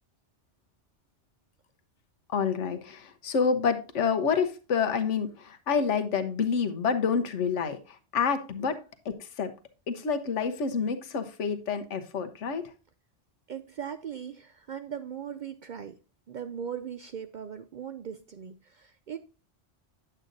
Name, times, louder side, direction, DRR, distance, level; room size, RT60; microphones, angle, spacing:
voice 1, 2.3-8.8 9.0-9.5 9.9-12.7, left 6 dB, 80° left, 8 dB, 1.2 m, -28 dB
voice 2, 13.5-16.0 16.3-19.2, right 8 dB, 60° right, 10 dB, 0.5 m, -39 dB
8.8 x 7.8 x 2.6 m, 0.33 s
omnidirectional pair, 1.2 m